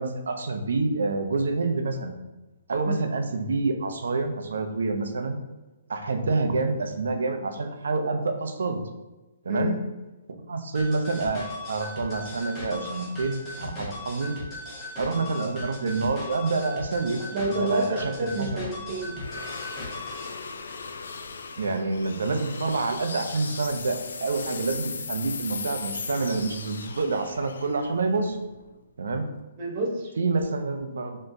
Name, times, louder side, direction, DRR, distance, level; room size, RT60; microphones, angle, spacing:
voice 1, 0.0-2.1 2.7-5.4 5.9-8.8 9.4-9.8 10.5-14.4 15.0-18.6 21.6-28.4 29.0-29.3 30.2-31.2, right 3 dB, 85° right, 6 dB, 0.5 m, -27 dB
sound 1, 10.7-20.3, left 2 dB, 15° left, 0.8 m, -38 dB
voice 2, 17.3-19.2 29.6-30.1, right 1 dB, 25° right, -1 dB, 0.7 m, -29 dB
sound 2, 17.7-28.9, left 5 dB, 85° left, 0.4 m, -38 dB
4.2 x 3.0 x 2.6 m, 1.1 s
hypercardioid pair, 175°, 0 cm